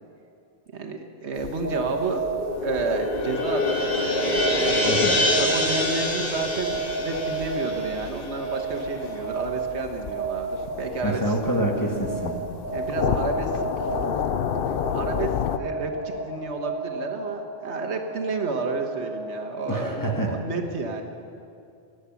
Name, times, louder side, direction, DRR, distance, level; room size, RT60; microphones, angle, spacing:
voice 1, 0.7-2.2 2.6-3.8 4.6-4.8 5.4-11.2 12.7-13.6 14.9-21.0, right 3 dB, 90° right, 3 dB, 1.5 m, -31 dB
sound 1, 1.3-15.6, left 8 dB, 60° left, 0.8 m, -33 dB
sound 2, 1.5-20.0, right 4 dB, 15° right, 4.2 m, -33 dB
sound 3, 2.2-8.8, left 2 dB, 40° left, 1.9 m, -26 dB
voice 2, 4.9-5.2 11.0-12.4 19.7-20.4, right 1 dB, 20° left, 1 dB, 1.4 m, -26 dB
19.5 x 8.0 x 7.0 m, 2.5 s
omnidirectional pair, 1.1 m